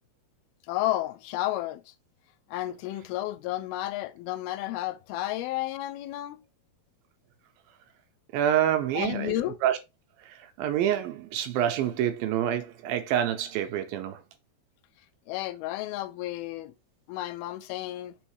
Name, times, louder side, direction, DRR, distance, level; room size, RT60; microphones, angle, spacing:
voice 1, 0.7-1.9 2.5-6.4 8.9-9.6 15.3-16.7 17.1-18.2, left 15 dB, 80° left, 2.3 m, -32 dB
voice 2, 8.3-9.4 9.6-9.8 10.2-14.2, right 10 dB, 75° right, 2.4 m, -27 dB
6.3 x 3.5 x 4.8 m
omnidirectional pair, 4.5 m